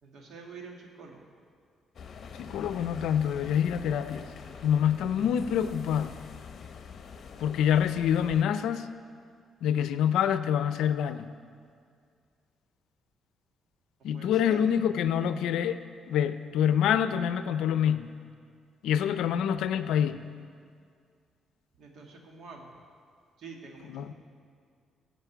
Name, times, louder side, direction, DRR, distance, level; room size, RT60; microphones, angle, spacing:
voice 1, 0.0-1.2 14.1-14.6 21.8-22.7 23.4-24.1, right 4 dB, 70° right, 1 dB, 2.0 m, -46 dB
sound 1, 2.0-8.4, left 6 dB, 55° left, 0.9 m, -45 dB
voice 2, 2.4-4.3 4.6-6.2 7.4-8.9 9.6-11.3 14.0-15.8 16.1-18.2 18.8-20.3 23.9-24.1, left 9 dB, 85° left, 12 dB, 0.5 m, -26 dB
15.5 x 5.3 x 8.1 m, 2.2 s
cardioid pair, 90°, 0 cm